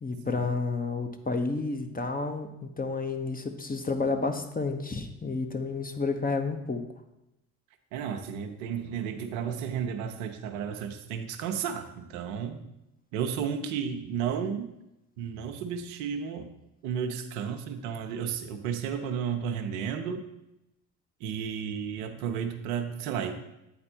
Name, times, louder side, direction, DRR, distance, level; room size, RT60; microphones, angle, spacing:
voice 1, 0.0-6.8, left 3 dB, 20° left, 6 dB, 0.9 m, -30 dB
voice 2, 7.9-12.6 13.1-14.7 15.2-16.5 16.8-20.2 21.2-23.3, right 7 dB, 75° right, 5 dB, 0.8 m, -33 dB
8.7 x 4.3 x 4.3 m, 0.89 s
hypercardioid pair, 50°, 41 cm